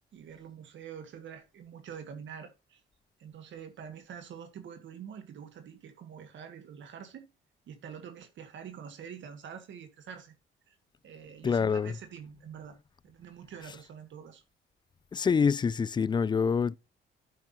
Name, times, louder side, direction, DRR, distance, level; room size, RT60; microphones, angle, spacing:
voice 1, 0.1-2.8 3.2-7.3 7.7-10.4 10.7-10.8 11.0-12.8 13.0-14.4, right 7 dB, 70° right, 1.8 m, -46 dB
voice 2, 11.4-11.9 15.1-16.8, left 6 dB, 25° left, 0.3 m, -26 dB
12.0 x 6.0 x 2.8 m
cardioid pair, 90°, 20 cm